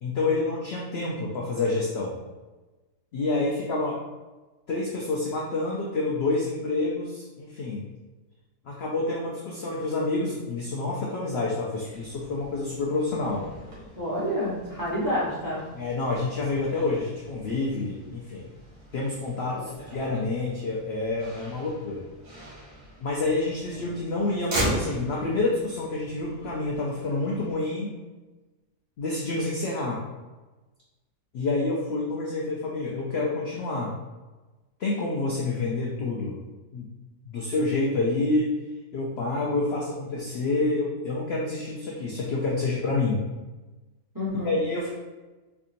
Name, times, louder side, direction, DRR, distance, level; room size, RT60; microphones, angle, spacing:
voice 1, 0.0-2.2 3.1-4.0 4.7-7.8 8.6-13.4 15.7-18.5 18.9-22.0 23.0-28.0 29.0-30.0 31.3-33.9 34.8-36.4 36.7-36.9 37.3-38.6 38.9-43.2 44.4-44.9, left 3 dB, 70° left, -3 dB, 0.6 m, -28 dB
Motor vehicle (road), 11.7-27.5, right 1 dB, 80° right, 1.9 m, -39 dB
voice 2, 14.0-15.6 19.5-19.7 44.1-44.6, equal, 15° right, -8 dB, 0.8 m, -29 dB
4.5 x 2.8 x 2.5 m, 1.2 s
omnidirectional pair, 1.7 m